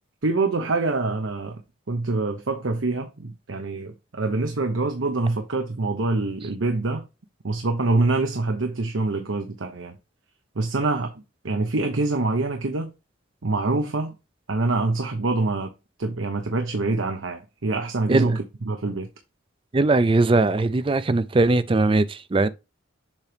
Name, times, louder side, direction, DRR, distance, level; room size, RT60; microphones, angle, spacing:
voice 1, 0.2-1.6 1.9-7.0 7.4-9.9 10.5-11.1 11.4-12.9 13.4-14.1 14.5-15.7 16.0-19.1, right 3 dB, 85° right, 0.9 m, -25 dB
voice 2, 19.7-22.5, right 2 dB, 25° right, 0.4 m, -20 dB
7.3 x 3.9 x 3.4 m
head